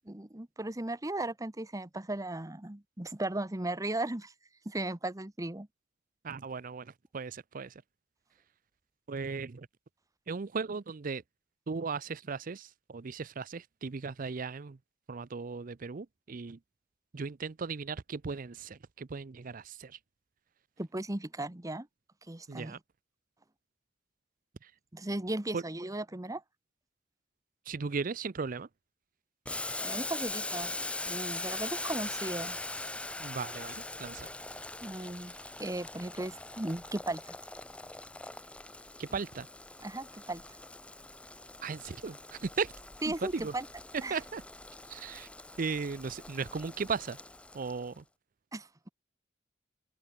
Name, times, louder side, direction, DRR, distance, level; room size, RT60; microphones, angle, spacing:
voice 1, 0.1-4.3 4.6-5.7 20.8-21.9 22.3-22.8 24.9-26.4 29.8-30.7 31.1-32.6 34.8-37.3 39.8-40.4 43.0-43.7 44.0-44.2 48.5-48.9, right 2 dB, 20° right, 1.1 m, -36 dB
voice 2, 6.2-7.8 9.1-9.7 10.3-11.2 11.7-14.8 15.1-16.6 17.1-20.0 22.5-22.8 24.6-24.7 25.5-25.6 27.7-28.7 33.2-34.3 39.0-39.5 41.6-42.7 43.1-43.5 44.1-44.4 44.9-45.3 45.6-47.2 47.5-48.0, right 5 dB, 45° right, 0.5 m, -37 dB
Boiling, 29.4-47.9, left 2 dB, 5° left, 0.5 m, -42 dB
head